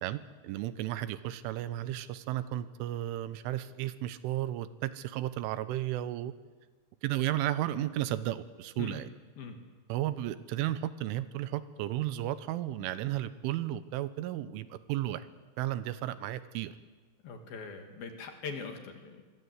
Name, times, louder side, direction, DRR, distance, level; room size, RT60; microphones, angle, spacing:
voice 1, 0.0-6.3 7.0-9.1 9.9-15.3 15.6-16.7, right 13 dB, 80° right, 14 dB, 3.3 m, -34 dB
voice 2, 17.2-19.2, left 5 dB, 55° left, 5 dB, 3.4 m, -41 dB
24.5 x 23.5 x 8.1 m, 1.4 s
omnidirectional pair, 5.7 m